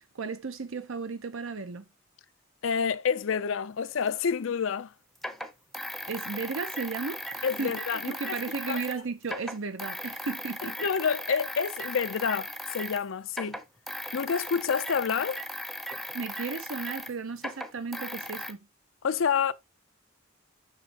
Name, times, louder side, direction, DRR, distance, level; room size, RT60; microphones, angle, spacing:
voice 1, 0.1-1.9 6.1-10.8 16.1-18.6, right 4 dB, 70° right, 0.7 m, -35 dB
voice 2, 2.6-4.9 7.4-8.4 8.7-8.8 10.6-13.6 14.1-15.4 19.0-19.5, left 6 dB, 65° left, 0.5 m, -28 dB
sound 1, 4.1-4.2 5.2-9.0 9.2-13.0 13.3-18.5, equal, ahead, 0.7 m, -37 dB
7.5 x 6.3 x 2.8 m
head